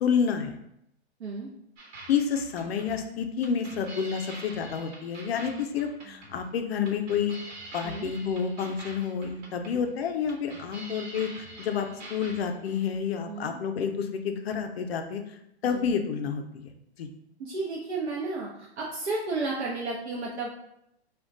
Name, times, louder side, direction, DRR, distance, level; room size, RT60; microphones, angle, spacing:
voice 1, 0.0-0.6 2.1-7.4 7.7-15.2 15.6-16.7 17.0-17.1, left 7 dB, 65° left, 6 dB, 0.5 m, -29 dB
sound 1, 1.8-12.9, right 2 dB, 40° right, 1.0 m, -45 dB
voice 2, 17.4-20.5, right 3 dB, 85° right, -4 dB, 0.7 m, -32 dB
2.3 x 2.2 x 3.7 m, 0.79 s
hypercardioid pair, 130°, 33 cm